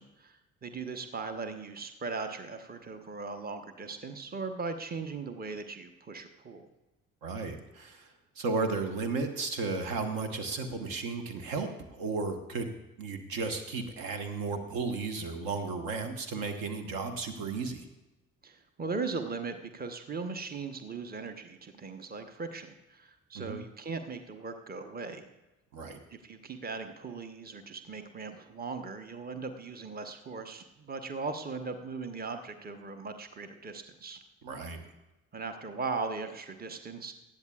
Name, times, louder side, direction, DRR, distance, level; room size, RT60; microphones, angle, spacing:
voice 1, 0.0-6.7 18.4-25.3 26.1-34.2 35.3-37.1, right 4 dB, 25° right, 8 dB, 1.1 m, -38 dB
voice 2, 7.2-8.1 8.4-12.7 13.0-17.9 23.3-23.6 25.7-26.0 34.4-34.8, right 4 dB, 60° right, 7 dB, 1.3 m, -34 dB
19.0 x 13.0 x 2.4 m, 1.0 s
figure-of-eight pair, 45°, 39 cm